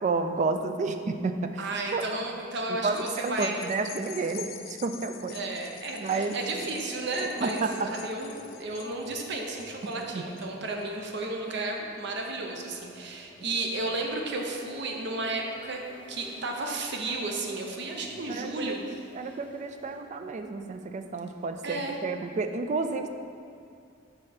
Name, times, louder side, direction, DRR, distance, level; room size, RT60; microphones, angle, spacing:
voice 1, 0.0-2.2 2.7-5.4 6.0-6.7 7.4-7.9 10.1-10.2 18.3-18.8 19.1-23.1, right 3 dB, 40° right, 7 dB, 0.3 m, -31 dB
voice 2, 1.6-3.7 5.3-15.8 16.1-18.8 21.6-21.9, right 2 dB, 60° right, 1 dB, 0.7 m, -33 dB
sound 1, 2.9-11.5 12.0-12.1, left 10 dB, 75° left, 0.3 m, -46 dB
sound 2, 6.2-20.0, equal, 10° left, 0.7 m, -50 dB
5.0 x 4.8 x 4.3 m, 2.4 s
head